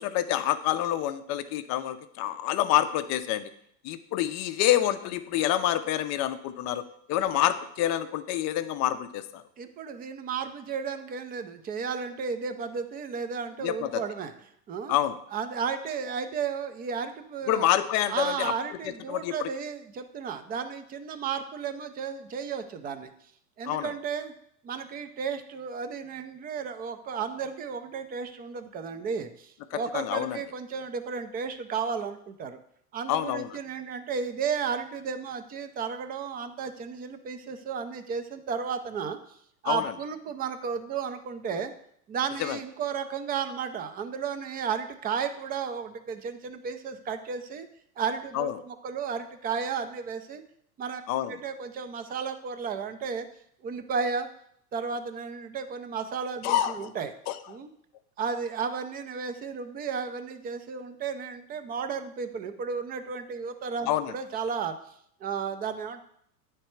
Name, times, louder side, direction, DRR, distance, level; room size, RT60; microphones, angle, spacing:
voice 1, 0.0-3.5 3.8-9.4 13.6-14.0 14.9-15.2 17.5-18.5 19.1-19.5 23.7-23.9 29.7-30.4 33.1-33.6 39.6-39.9 42.4-42.6 48.3-48.6 51.1-51.4 56.4-56.9 57.3-57.4 63.9-64.2, left 12 dB, 35° left, 10 dB, 0.5 m, -27 dB
voice 2, 9.6-14.3 14.7-15.0 15.3-17.6 18.1-23.1 23.6-24.3 24.6-32.6 32.9-39.4 39.6-41.7 42.1-47.7 48.0-50.4 50.8-51.0 51.3-53.3 53.6-54.3 54.7-57.1 57.5-57.7 58.2-64.7 65.2-66.0, right 6 dB, 20° right, 9 dB, 0.4 m, -33 dB
8.9 x 3.3 x 4.4 m, 0.70 s
hypercardioid pair, 105°, 46 cm